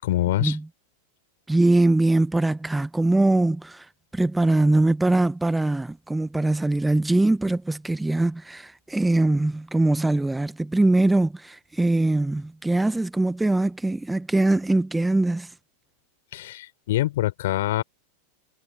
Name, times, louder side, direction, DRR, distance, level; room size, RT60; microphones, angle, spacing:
voice 1, 0.0-0.6 16.3-17.8, left 15 dB, 55° left, 6.3 m, -25 dB
voice 2, 1.5-3.8 4.1-15.5, right 2 dB, 5° right, 1.5 m, -22 dB
figure-of-eight pair, 90°, 0 cm